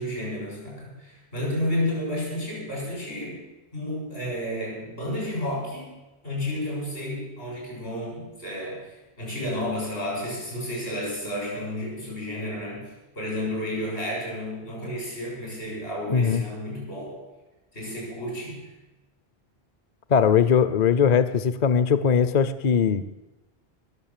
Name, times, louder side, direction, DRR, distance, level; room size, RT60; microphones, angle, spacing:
voice 1, 0.0-3.4 3.7-5.9 6.2-17.2 17.7-18.7, left 1 dB, 85° left, -3 dB, 7.2 m, -31 dB
voice 2, 16.1-16.4 20.1-23.0, left 7 dB, 50° left, 13 dB, 0.6 m, -20 dB
21.0 x 7.1 x 7.4 m, 1.1 s
omnidirectional pair, 1.1 m